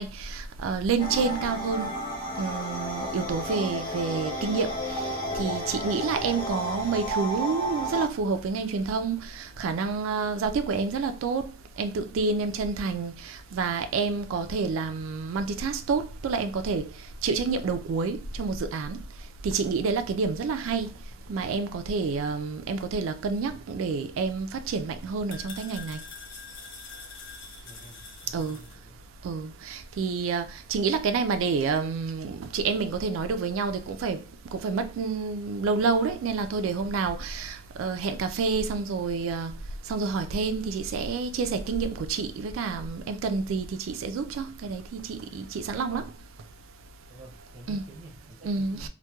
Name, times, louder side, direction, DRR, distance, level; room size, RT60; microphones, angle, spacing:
voice 1, 0.0-1.9 2.4-4.7 5.3-11.5 11.8-16.9 17.2-19.0 19.4-20.9 21.3-26.0 28.3-28.6 29.2-34.2 34.5-39.5 39.9-46.1 47.7-47.9 48.4-48.9, right 4 dB, 75° right, 0.3 m, -28 dB
sound 1, 1.0-8.1, equal, 25° left, 0.7 m, -32 dB
sound 2, 24.2-28.7, left 5 dB, 60° left, 0.5 m, -46 dB
voice 2, 27.6-29.0 47.1-48.9, right 1 dB, 30° right, 0.6 m, -49 dB
2.9 x 2.1 x 2.2 m
head